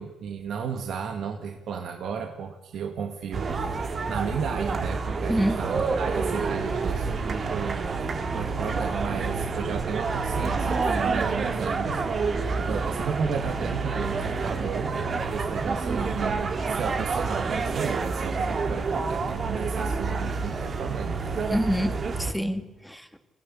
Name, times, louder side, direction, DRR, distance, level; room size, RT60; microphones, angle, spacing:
voice 1, 0.0-15.0 15.3-21.8, right 6 dB, 70° right, 4 dB, 1.9 m, -34 dB
sound 1, 3.3-22.3, right 4 dB, 45° right, 2.3 m, -28 dB
voice 2, 21.5-23.2, equal, ahead, 7 dB, 2.2 m, -27 dB
25.0 x 16.0 x 8.6 m, 1.1 s
cardioid pair, 90°, 0 cm